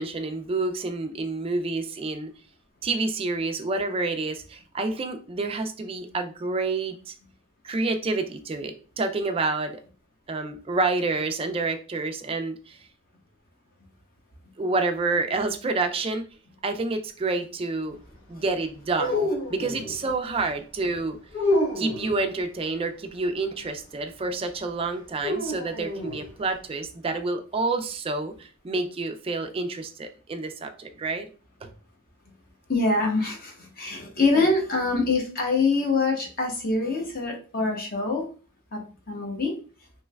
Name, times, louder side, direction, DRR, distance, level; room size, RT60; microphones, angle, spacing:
voice 1, 0.0-2.3 2.8-7.1 7.6-9.8 10.3-12.8 14.6-16.3 16.6-18.0 18.3-21.2 21.8-31.3 31.6-31.7 34.3-34.5, right 3 dB, 25° right, 6 dB, 0.3 m, -28 dB
sound 1, 18.9-20.0 21.3-22.2 25.2-26.3, left 1 dB, 70° left, 1.1 m, -27 dB
voice 2, 32.7-38.3 38.7-38.8 39.1-39.5, left 3 dB, 45° left, 0 dB, 0.9 m, -25 dB
3.2 x 3.0 x 2.3 m, 0.38 s
head